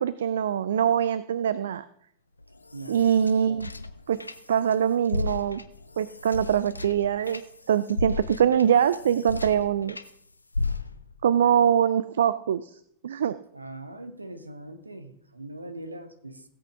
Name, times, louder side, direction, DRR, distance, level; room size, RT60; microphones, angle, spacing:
voice 1, 0.0-1.8 2.9-3.7 4.1-4.2 4.5-5.6 6.0-7.4 7.7-10.0 11.2-12.7 13.0-13.4, right 9 dB, 65° right, 15 dB, 0.3 m, -23 dB
sound 1, 2.4-4.7 5.0-10.1 10.5-11.2, left 3 dB, 80° left, 0.5 m, -34 dB
voice 2, 13.5-16.4, right 1 dB, 80° right, 10 dB, 0.9 m, -41 dB
16.5 x 8.0 x 3.5 m, 0.67 s
figure-of-eight pair, 90°, 0 cm